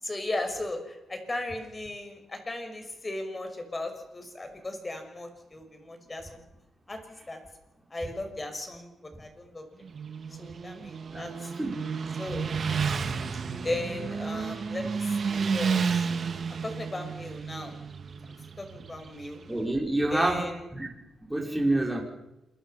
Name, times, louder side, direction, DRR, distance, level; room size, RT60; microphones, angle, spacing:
voice 1, 0.0-6.4 6.9-7.4 7.9-9.6 10.4-11.3 12.2-12.5 13.6-16.1 16.5-17.8 18.6-19.4 20.1-20.6, left 2 dB, 25° left, 5 dB, 6.2 m, -36 dB
Motorcycle, 9.8-19.6, right 5 dB, 50° right, 2.1 m, -32 dB
voice 2, 11.5-11.9 12.3-12.4 19.5-20.9 21.3-22.0, right 1 dB, 5° right, -1 dB, 5.3 m, -28 dB
27.5 x 22.5 x 5.8 m, 0.94 s
cardioid pair, 95°, 0 cm